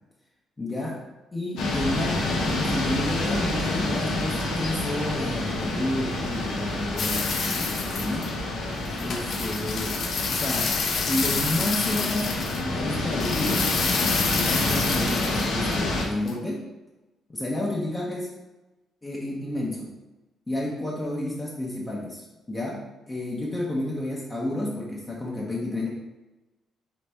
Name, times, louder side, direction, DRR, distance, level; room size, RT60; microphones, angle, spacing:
voice 1, 0.6-1.0 1.3-8.3 9.0-10.8 11.1-13.7 14.3-16.7 17.3-18.3 19.0-19.9 20.5-25.9, left 1 dB, 25° left, -4 dB, 0.8 m, -31 dB
sound 1, 1.6-16.1, left 2 dB, 85° left, 0.8 m, -28 dB
sound 2, 7.0-8.4 8.7-12.6 13.0-15.8 16.0-16.3, left 5 dB, 55° left, 0.5 m, -29 dB
4.1 x 3.2 x 3.4 m, 1.1 s
cardioid pair, 90°, 0 cm